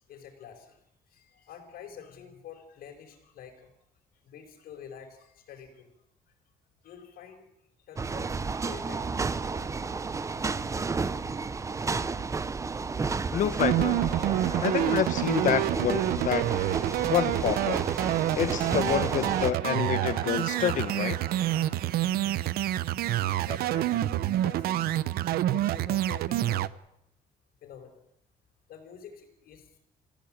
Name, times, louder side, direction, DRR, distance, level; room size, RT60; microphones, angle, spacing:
voice 1, 0.0-3.7 4.1-5.9 6.8-7.5 7.9-9.7 10.3-10.4 22.8-25.0 25.5-26.8 27.6-28.0 28.7-29.8, left 7 dB, 75° left, 0 dB, 4.7 m, -48 dB
sound 1, 8.0-19.5, right 4 dB, 20° right, 0.8 m, -32 dB
voice 2, 13.3-14.0 14.6-16.5 17.0-17.8 18.4-21.2, left 10 dB, 55° left, 14 dB, 1.2 m, -28 dB
sound 2, 13.5-22.3, right 3 dB, 40° right, 6.4 m, -44 dB
sound 3, 13.6-26.7, right 13 dB, 90° right, 0.8 m, -27 dB
26.0 x 15.5 x 8.7 m, 0.77 s
cardioid pair, 150°, 15 cm